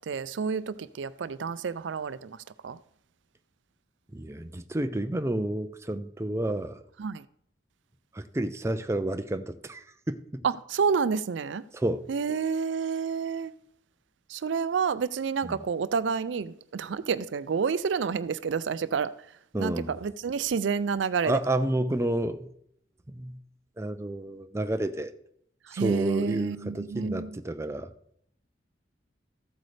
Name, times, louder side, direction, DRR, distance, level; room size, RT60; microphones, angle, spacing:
voice 1, 0.1-2.4 2.6-2.8 7.0-7.2 10.4-11.6 12.1-13.5 14.3-19.1 19.6-21.4 25.7-27.3, right 6 dB, 80° right, 0.4 m, -29 dB
voice 2, 4.1-6.8 8.1-10.2 11.7-12.1 15.4-15.6 19.5-19.9 21.2-22.5 23.1-23.4 23.8-25.1 25.7-27.9, right 1 dB, 15° right, 0.5 m, -30 dB
14.5 x 8.1 x 3.3 m
head